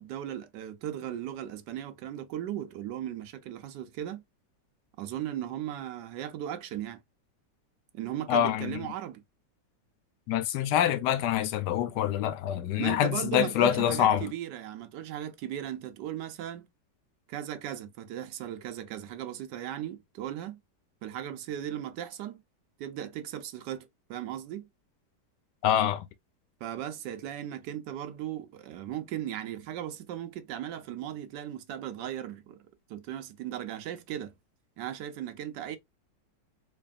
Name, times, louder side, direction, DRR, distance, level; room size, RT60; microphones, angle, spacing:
voice 1, 0.0-4.2 5.0-7.0 7.9-9.2 12.8-16.7 17.3-20.6 21.0-22.4 22.8-24.7 26.6-32.6 32.9-34.3 34.8-35.8, right 11 dB, 80° right, 1.2 m, -37 dB
voice 2, 8.3-8.8 10.3-14.3 25.6-26.1, left 10 dB, 75° left, 1.2 m, -26 dB
4.0 x 3.2 x 2.4 m
omnidirectional pair, 1.9 m